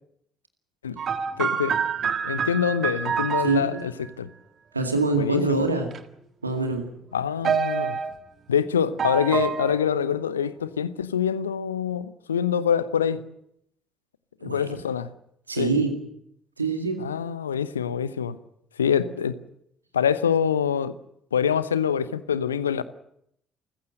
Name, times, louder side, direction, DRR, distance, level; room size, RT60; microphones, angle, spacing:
sound 1, 1.0-3.9 5.6-6.0 7.4-8.1 9.0-9.7, right 6 dB, 45° right, 1.7 m, -26 dB
voice 1, 1.4-1.8 2.2-3.9 4.2-4.3 5.2-5.4 7.1-8.0 8.5-13.2 14.4-15.1 15.6-15.7 17.0-18.4 18.8-19.4 19.9-20.9 21.3-22.8, left 8 dB, 80° left, 0.8 m, -25 dB
voice 2, 3.4-3.8 4.7-5.9 6.4-6.9 14.4-14.8 15.5-16.0 16.6-17.1, right 3 dB, 85° right, 2.2 m, -25 dB
28.5 x 15.5 x 7.8 m
figure-of-eight pair, 50°, 0 cm